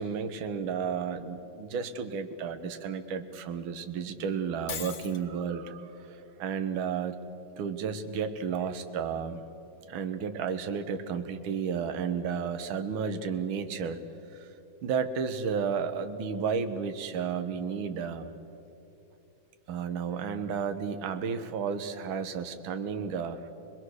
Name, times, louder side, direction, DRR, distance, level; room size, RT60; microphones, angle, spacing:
voice 1, 0.0-7.2 7.6-9.4 9.9-14.0 14.3-14.5 14.8-18.3 19.7-23.5, right 6 dB, 55° right, 9 dB, 1.5 m, -32 dB
Shatter, 4.7-5.2, left 7 dB, 80° left, 0.8 m, -38 dB
27.0 x 20.5 x 6.5 m, 2.9 s
omnidirectional pair, 3.3 m